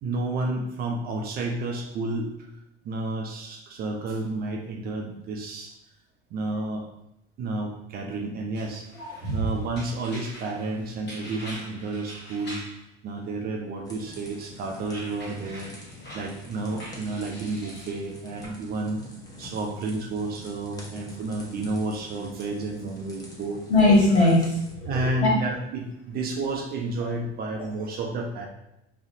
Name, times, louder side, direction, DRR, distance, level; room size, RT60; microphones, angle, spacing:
voice 1, 0.0-2.5 2.8-5.7 6.3-6.9 7.4-8.9 9.3-12.6 13.0-15.7 16.1-19.0 19.4-23.6 24.9-28.5, right 2 dB, 30° right, 1 dB, 0.4 m, -31 dB
sound 1, 8.5-12.8 14.1-18.5, equal, 30° left, 0.9 m, -44 dB
voice 2, 8.9-9.5 23.7-25.3, left 2 dB, 80° left, -6 dB, 0.8 m, -21 dB
sound 2, 13.8-24.7, left 1 dB, 10° left, 0.6 m, -46 dB
2.5 x 2.0 x 2.6 m, 0.84 s
hypercardioid pair, 80°, 33 cm